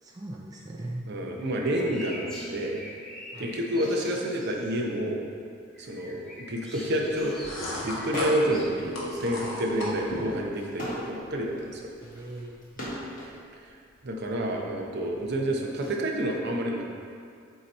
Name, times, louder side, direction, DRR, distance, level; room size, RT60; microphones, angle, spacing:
voice 1, 0.0-1.1 3.3-3.6 12.0-12.9, right 1 dB, 20° right, -2 dB, 0.4 m, -40 dB
voice 2, 1.1-2.8 3.4-5.2 5.8-7.5 7.8-11.9 13.5-13.7 14.0-16.8, right 1 dB, 55° right, 0 dB, 0.7 m, -29 dB
sound 1, 1.4-4.8 5.7-8.6, left 1 dB, 5° left, 0.9 m, -44 dB
sound 2, 7.1-10.4, left 1 dB, 70° left, 1.1 m, -36 dB
sound 3, 8.1-8.6 9.0-13.4 14.2-15.9, left 1 dB, 40° left, 1.4 m, -39 dB
7.9 x 2.9 x 4.1 m, 2.2 s
head